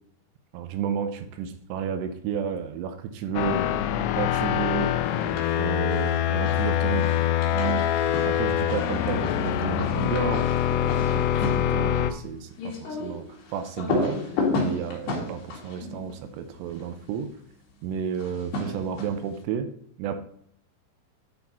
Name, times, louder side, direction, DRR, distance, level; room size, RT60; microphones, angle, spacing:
voice 1, 0.5-3.7 4.2-4.9 5.5-7.1 7.5-7.8 8.2-10.4 10.7-13.3 13.5-17.3 17.8-19.7 20.0-20.2, right 7 dB, 80° right, 8 dB, 2.7 m, -31 dB
sound 1, 3.3-12.1, left 11 dB, 80° left, 2.6 m, -24 dB
sound 2, 5.1-5.6 5.9-16.9 18.1-19.4, left 3 dB, 65° left, 3.5 m, -33 dB
10.0 x 4.4 x 4.1 m, 0.67 s
omnidirectional pair, 5.1 m